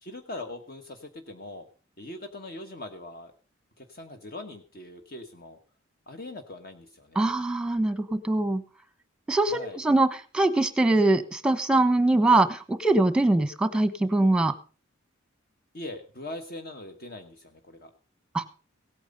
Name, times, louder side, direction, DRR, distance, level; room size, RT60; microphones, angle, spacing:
voice 1, 0.0-1.6 2.0-3.3 3.8-5.6 6.1-7.3 9.5-9.8 15.7-17.9, left 2 dB, 45° left, 6 dB, 1.2 m, -41 dB
voice 2, 7.1-8.6 9.3-14.5 18.3-18.4, right 2 dB, 5° right, 11 dB, 1.1 m, -23 dB
17.0 x 9.0 x 5.4 m, 0.37 s
head